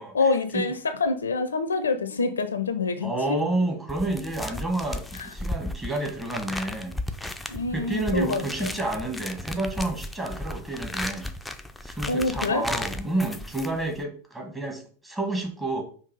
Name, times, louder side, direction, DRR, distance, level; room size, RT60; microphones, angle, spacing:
voice 1, 0.1-3.4 7.5-8.8 12.1-12.7, left 3 dB, 70° left, 10 dB, 0.4 m, -26 dB
voice 2, 3.0-7.0 7.4-11.3 11.8-15.8, right 2 dB, 10° right, 3 dB, 1.0 m, -30 dB
sound 1, 3.9-14.0, left 1 dB, 5° left, 0.4 m, -35 dB
5.3 x 2.4 x 4.0 m, 0.44 s
figure-of-eight pair, 90°, 0 cm